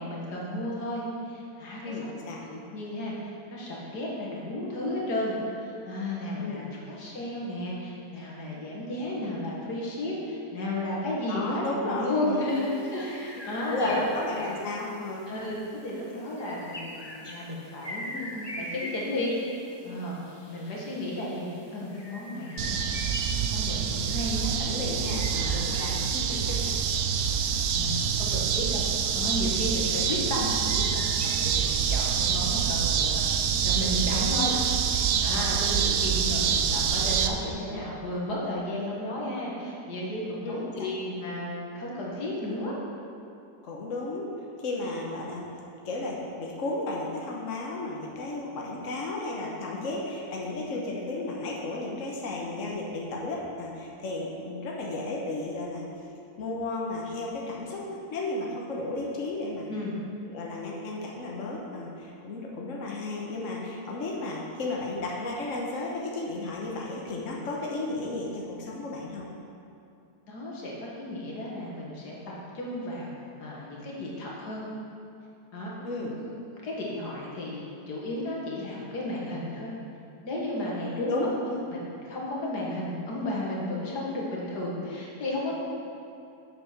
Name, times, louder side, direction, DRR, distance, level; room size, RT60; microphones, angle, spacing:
voice 1, 0.0-2.1 2.5-14.0 14.4-14.5 15.3-20.2 20.4-22.9 23.2-24.5 25.8-25.9 27.4-28.8 29.1-42.7 59.7-59.9 67.4-67.5 70.3-74.7 75.5-75.7 76.2-76.4 76.6-79.7 80.2-81.3 81.7-85.6, left 1 dB, 80° left, -4 dB, 2.3 m, -33 dB
voice 2, 1.8-2.4 6.3-6.8 11.3-12.5 13.7-15.3 24.6-25.9 26.1-26.6 34.2-34.4 40.4-40.9 43.6-44.3 44.6-45.5 45.8-55.8 56.4-59.7 60.3-69.3 75.8-76.2 81.0-81.6, left 2 dB, 55° left, -2 dB, 1.4 m, -33 dB
sound 1, 12.5-31.6, equal, 15° left, 1.1 m, -44 dB
sound 2, 22.6-37.3, right 7 dB, 70° right, 1.0 m, -26 dB
8.1 x 6.8 x 5.9 m, 2.6 s
omnidirectional pair, 1.7 m